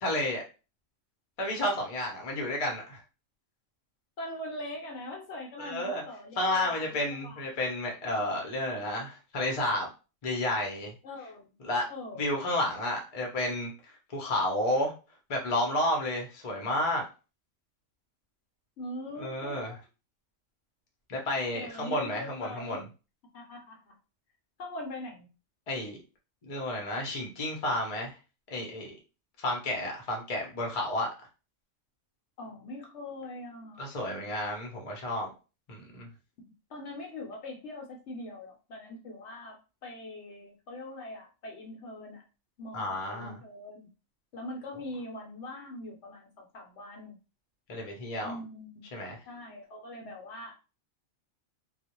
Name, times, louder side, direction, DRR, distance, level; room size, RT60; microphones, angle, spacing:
voice 1, 0.0-0.4 1.4-3.0 5.6-6.0 6.4-9.9 10.2-10.9 11.6-11.9 12.2-14.9 15.3-17.0 19.1-19.8 21.1-22.9 25.7-26.0 26.4-28.1 28.5-28.9 29.4-31.1 33.8-35.3 35.7-36.1 42.7-43.4 47.7-48.4 48.9-49.2, left 1 dB, 40° left, 0 dB, 0.6 m, -31 dB
voice 2, 4.2-7.4 11.0-11.5 11.9-12.2 18.8-19.8 21.5-22.8 23.3-23.9 24.6-25.3 32.4-33.9 36.7-42.2 42.6-43.9 44.3-47.2 48.2-48.9 49.3-50.5, left 1 dB, 65° left, 1 dB, 0.8 m, -42 dB
2.3 x 2.0 x 2.9 m, 0.32 s
omnidirectional pair, 1.4 m